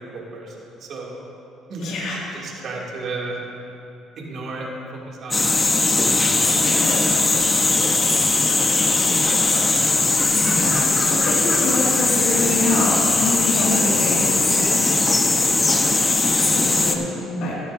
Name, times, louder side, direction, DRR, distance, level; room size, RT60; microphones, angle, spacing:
voice 1, 0.1-1.2 1.7-2.0 2.3-3.4 4.2-5.6 6.0-6.6 6.9-7.3 8.2-10.4 13.1-13.3 14.5-15.7, right 2 dB, 60° right, -3 dB, 2.6 m, -35 dB
voice 2, 1.8-2.2 6.5-7.1 10.3-14.3 16.5-17.5, left 2 dB, 70° left, -4 dB, 2.2 m, -26 dB
sound 1, 5.3-17.0, left 3 dB, 25° left, 1.0 m, -19 dB
16.5 x 11.5 x 2.7 m, 2.7 s
supercardioid pair, 80°, 0 cm